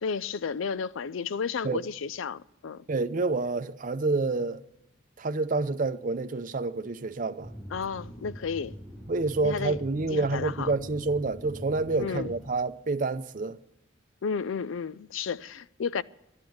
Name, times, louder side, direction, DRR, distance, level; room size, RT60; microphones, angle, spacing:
voice 1, 0.0-2.8 7.7-8.8 9.4-9.8 10.1-10.7 12.0-12.3 14.2-16.0, left 6 dB, 85° left, 0.4 m, -32 dB
voice 2, 2.9-4.6 5.2-7.5 9.1-13.6, right 3 dB, 45° right, 0.6 m, -28 dB
sound 1, 7.4-12.4, equal, 15° left, 5.3 m, -43 dB
12.0 x 10.5 x 9.2 m
head